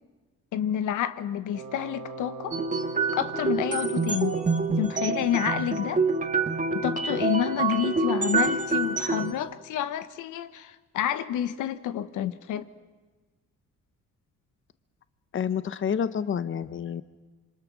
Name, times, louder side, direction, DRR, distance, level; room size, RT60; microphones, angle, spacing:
voice 1, 0.5-2.6 3.2-4.4 4.8-6.0 6.7-12.7, left 10 dB, 85° left, 12 dB, 1.2 m, -29 dB
Wind instrument woodwind instrument, 1.5-9.6, right 2 dB, 80° right, 2.6 m, -43 dB
sound 1, 2.5-9.3, right 4 dB, 25° right, 1.8 m, -27 dB
voice 2, 15.3-17.0, left 7 dB, 40° left, 14 dB, 0.9 m, -28 dB
27.0 x 25.5 x 6.3 m, 1.3 s
cardioid pair, 90°, 30 cm